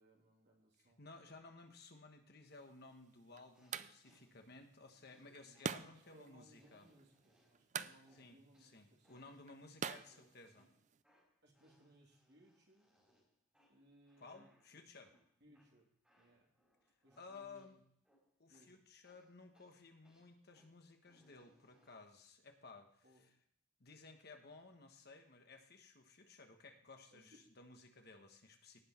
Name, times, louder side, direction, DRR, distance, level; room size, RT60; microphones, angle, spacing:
voice 1, 0.0-1.0 5.1-9.3 11.4-12.9 13.7-14.8 15.4-15.9 16.2-16.5 17.0-17.8 18.5-18.8 23.0-23.3 27.1-27.2, right 1 dB, 55° right, -1 dB, 2.9 m, -67 dB
voice 2, 0.8-6.9 8.1-10.7 14.2-15.1 17.2-17.8 18.4-23.3 23.8-28.8, left 3 dB, 50° left, 5 dB, 1.4 m, -57 dB
sound 1, 2.5-11.0, right 6 dB, 35° right, 0.4 m, -49 dB
sound 2, 3.5-4.4 5.0-7.7 8.0-9.5 10.0-17.8 18.0-18.7 19.0-22.2, equal, 5° right, 4.1 m, -76 dB
18.0 x 6.3 x 4.4 m, 0.66 s
head